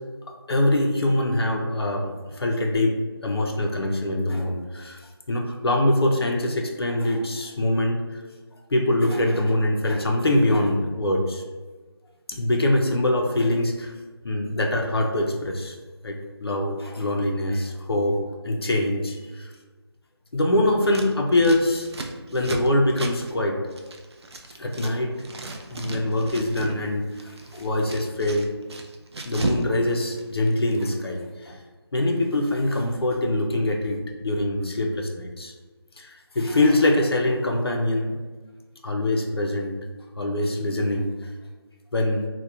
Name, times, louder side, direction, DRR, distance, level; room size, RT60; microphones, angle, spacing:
voice 1, 0.5-3.0 3.2-5.0 5.3-8.3 8.7-11.4 12.3-13.9 14.2-15.7 16.0-19.5 20.3-21.9 22.3-23.6 24.6-25.1 25.7-28.5 29.3-31.6 31.9-35.5 36.0-38.2 38.8-39.8 40.2-41.3 41.9-42.3, left 1 dB, 70° left, 1 dB, 0.4 m, -24 dB
Scissors, 20.8-24.9 25.2-26.8 27.1-29.7 29.9-30.8, right 2 dB, 75° right, 0.4 m, -35 dB
2.8 x 2.1 x 2.3 m, 1.3 s
figure-of-eight pair, 180°, 14 cm